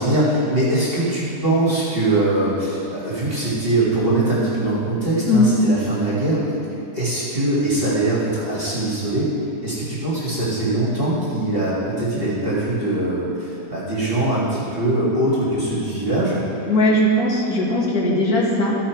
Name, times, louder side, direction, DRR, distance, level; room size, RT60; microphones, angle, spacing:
voice 1, 0.0-6.4 6.7-9.3 9.6-16.4, right 2 dB, 35° right, -8 dB, 1.8 m, -22 dB
voice 2, 16.7-18.8, left 1 dB, 65° left, -4 dB, 1.9 m, -18 dB
14.0 x 4.9 x 4.5 m, 2.8 s
omnidirectional pair, 1.7 m